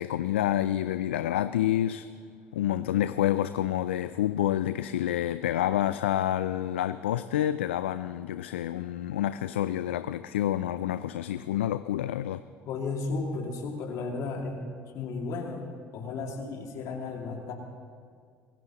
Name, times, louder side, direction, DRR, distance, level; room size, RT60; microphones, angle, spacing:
voice 1, 0.0-2.1 2.5-12.4, left 12 dB, 90° left, 13 dB, 0.3 m, -28 dB
voice 2, 12.7-14.6 14.9-15.7 15.9-17.5, left 4 dB, 65° left, 1 dB, 2.4 m, -34 dB
25.5 x 16.0 x 3.0 m, 2.1 s
hypercardioid pair, 70°, 6 cm